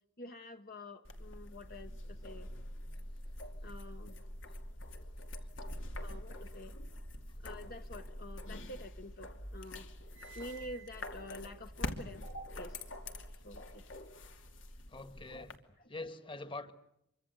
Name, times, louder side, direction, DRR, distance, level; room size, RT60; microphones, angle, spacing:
voice 1, 0.2-2.5 3.6-4.1 6.0-6.8 7.4-9.9 10.3-12.8 13.3-13.9 15.3-15.5 15.8-15.9, left 1 dB, 50° left, 6 dB, 1.2 m, -48 dB
sound 1, 1.0-15.6, left 1 dB, 85° left, 2.6 m, -45 dB
sound 2, 8.1-9.2 9.5-12.9, right 7 dB, 75° right, 1.5 m, -58 dB
voice 2, 14.9-15.6 15.9-16.7, left 2 dB, 25° left, 11 dB, 1.7 m, -44 dB
26.5 x 24.0 x 8.0 m, 0.79 s
head